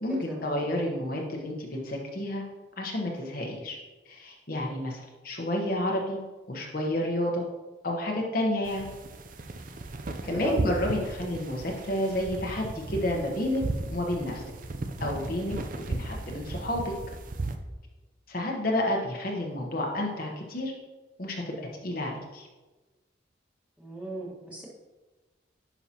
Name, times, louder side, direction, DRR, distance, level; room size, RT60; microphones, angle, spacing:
voice 1, 0.0-2.4 2.8-3.8 4.1-6.2 6.5-7.4 7.8-8.9 10.2-13.6 13.9-14.4 15.0-16.8 18.3-20.7 21.2-22.5, left 1 dB, 45° left, -1 dB, 1.1 m, -30 dB
sound 1, 8.7-17.6, right 2 dB, 45° right, 0.5 m, -36 dB
voice 2, 10.2-10.6 23.8-24.7, right 3 dB, 5° right, -5 dB, 1.5 m, -36 dB
10.0 x 5.7 x 2.9 m, 1.2 s
head